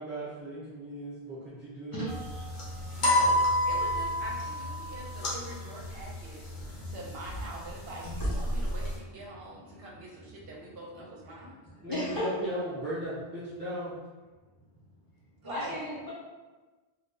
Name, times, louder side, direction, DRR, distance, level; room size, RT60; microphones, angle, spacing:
voice 1, 0.0-2.1 11.8-14.0, right 1 dB, 15° right, -10 dB, 0.4 m, -37 dB
voice 2, 1.9-3.0 6.5-7.0 8.2-8.5 9.2-11.0 11.3-12.3 15.4-16.1, equal, 20° left, -10 dB, 1.3 m, -40 dB
sound 1, 2.1-9.0, left 1 dB, 50° left, 0.9 m, -30 dB
voice 3, 3.0-6.5 6.9-11.6 15.4-15.9, right 2 dB, 70° right, -2 dB, 0.8 m, -43 dB
2.6 x 2.2 x 3.6 m, 1.3 s
omnidirectional pair, 1.1 m